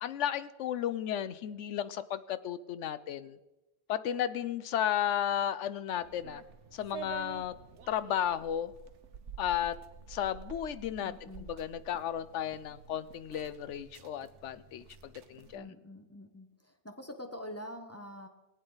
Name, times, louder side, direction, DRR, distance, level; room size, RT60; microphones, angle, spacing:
voice 1, 0.0-3.4 3.9-6.4 6.7-7.5 7.9-8.7 9.4-9.8 10.1-11.1 11.4-15.7, left 10 dB, 90° left, 15 dB, 1.0 m, -34 dB
sound 1, 6.0-15.6, right 7 dB, 90° right, 1.1 m, -50 dB
voice 2, 11.0-11.5 15.5-18.3, left 1 dB, 15° left, 5 dB, 0.9 m, -45 dB
19.0 x 8.9 x 4.0 m, 1.0 s
omnidirectional pair, 1.2 m